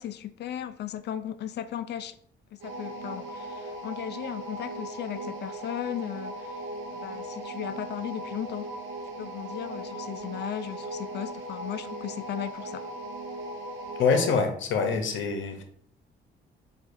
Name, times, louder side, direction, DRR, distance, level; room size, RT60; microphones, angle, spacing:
voice 1, 0.0-2.1 2.5-6.6 6.9-8.7 9.2-12.9, left 10 dB, 60° left, 0.4 m, -36 dB
sound 1, 2.6-14.5, right 1 dB, 75° right, 1.0 m, -38 dB
voice 2, 14.0-15.6, left 5 dB, 75° left, 0.8 m, -25 dB
6.3 x 2.5 x 2.5 m
cardioid pair, 90°, 20 cm